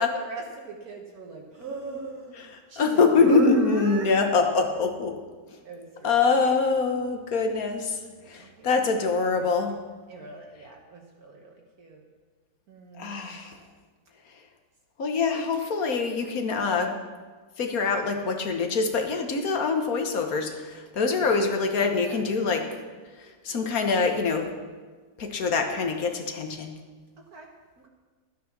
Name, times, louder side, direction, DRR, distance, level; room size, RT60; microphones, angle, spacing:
voice 1, 0.0-4.2 5.6-6.6 7.4-7.5 8.3-8.7 9.0-9.7 10.1-12.1 12.7-13.5 21.2-21.4 21.8-22.2 27.2-27.5 27.8-27.9, right 4 dB, 65° right, 0 dB, 1.6 m, -40 dB
voice 2, 2.8-5.2 5.5-5.6 6.0-8.0 8.3-9.8 13.0-13.6 15.0-17.0 17.6-22.7 23.2-24.5 25.2-26.7, left 4 dB, 60° left, 5 dB, 1.6 m, -24 dB
13.0 x 9.3 x 6.0 m, 1.4 s
omnidirectional pair, 1.8 m